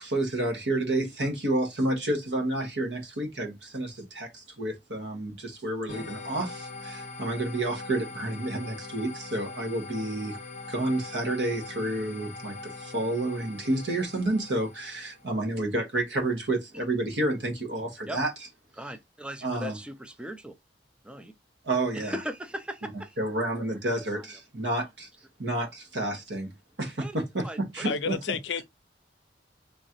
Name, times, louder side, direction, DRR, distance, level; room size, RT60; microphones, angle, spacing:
voice 1, 0.0-10.4 10.7-18.3 19.4-19.8 21.6-22.1 23.2-25.1 25.4-26.5 26.8-28.4, right 1 dB, 75° right, 1.3 m, -30 dB
sound 1, 5.9-15.3, left 3 dB, 45° left, 0.8 m, -42 dB
voice 2, 18.8-20.6 21.0-21.3 21.9-23.2 24.1-24.3 27.0-27.2 27.4-27.6, equal, 5° right, 0.4 m, -38 dB
voice 3, 27.8-28.6, left 5 dB, 80° left, 0.5 m, -30 dB
3.7 x 3.0 x 2.8 m
head